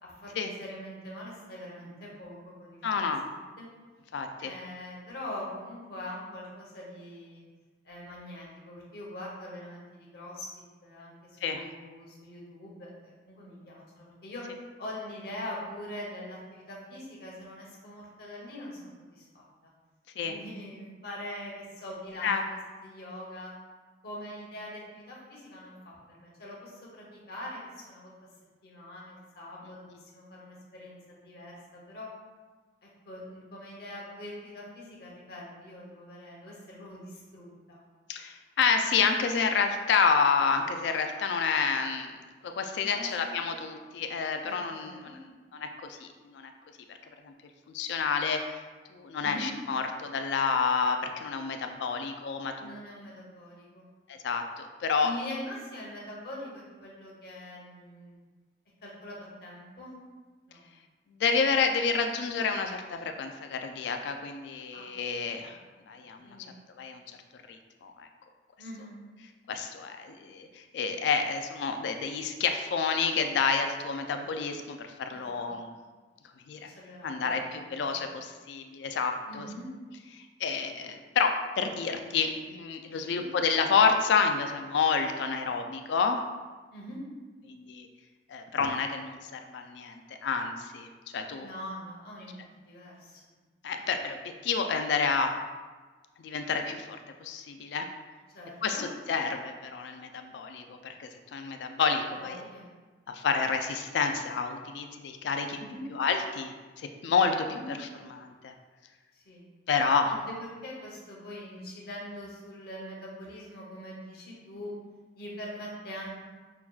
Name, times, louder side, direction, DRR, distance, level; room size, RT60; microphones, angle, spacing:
voice 1, 0.0-3.1 3.6-3.7 4.4-7.4 7.8-10.5 10.8-19.4 20.2-23.5 24.0-28.1 28.6-29.9 30.1-32.1 32.8-37.8 42.8-43.1 44.4-45.2 49.2-49.5 52.6-53.9 55.0-58.2 58.8-60.0 60.5-60.6 64.7-64.9 65.3-65.6 65.9-66.6 68.6-69.0 75.1-75.8 76.7-78.1 79.3-79.7 83.0-83.3 86.7-87.0 91.4-92.3 92.6-93.2 98.3-98.9 102.1-102.7 105.6-105.9 107.5-107.7 109.1-109.5 110.0-114.7 115.1-116.3, left 1 dB, 60° left, -3 dB, 0.8 m, -43 dB
voice 2, 2.8-3.2 4.1-4.5 11.4-11.7 20.2-20.3 22.2-22.4 29.9-30.0 38.1-42.2 42.4-45.2 45.5-46.5 47.7-48.6 48.9-52.8 54.1-55.1 61.2-65.6 65.9-66.4 66.8-67.2 67.5-68.1 69.5-75.7 76.5-76.7 77.0-79.5 80.1-86.2 87.5-87.9 88.3-90.0 90.2-90.9 91.1-91.5 93.6-95.3 96.2-97.9 98.6-102.4 103.1-105.6 105.9-107.8 108.1-108.5 109.7-110.1, left 5 dB, 75° left, 6 dB, 0.3 m, -29 dB
5.6 x 2.3 x 2.3 m, 1.3 s
head